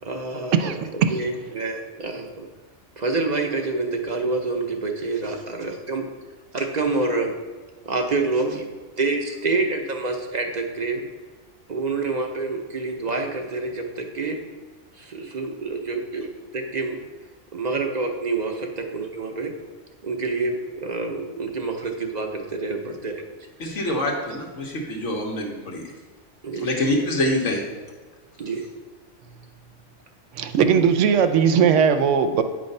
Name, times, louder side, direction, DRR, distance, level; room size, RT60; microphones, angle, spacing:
voice 1, 0.0-0.7 1.1-2.5 3.0-6.1 6.5-7.3 7.8-8.7 9.0-11.1 11.7-14.4 15.0-16.3 16.5-17.0 17.5-19.5 20.0-23.2 26.4-26.7 28.4-28.7, right 3 dB, 45° right, 3 dB, 0.6 m, -27 dB
voice 2, 0.5-1.2 30.4-32.4, right 7 dB, 85° right, 9 dB, 0.9 m, -19 dB
voice 3, 23.6-25.8 26.6-27.6, left 1 dB, 90° left, 0 dB, 1.5 m, -25 dB
8.9 x 3.2 x 5.3 m, 1.4 s
omnidirectional pair, 1.2 m